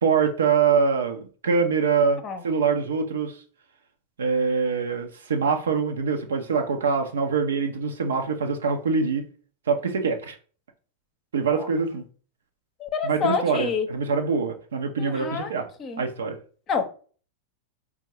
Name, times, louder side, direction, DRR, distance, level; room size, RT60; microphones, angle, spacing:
voice 1, 0.0-3.4 4.2-9.2 9.7-10.4 11.3-12.0 13.0-15.7 16.0-16.4, right 5 dB, 65° right, 0.7 m, -24 dB
voice 2, 12.8-13.9 15.0-15.5 15.8-16.0 16.7-16.9, left 5 dB, 30° left, 0.7 m, -28 dB
4.5 x 2.3 x 4.4 m
figure-of-eight pair, 90°, 0 cm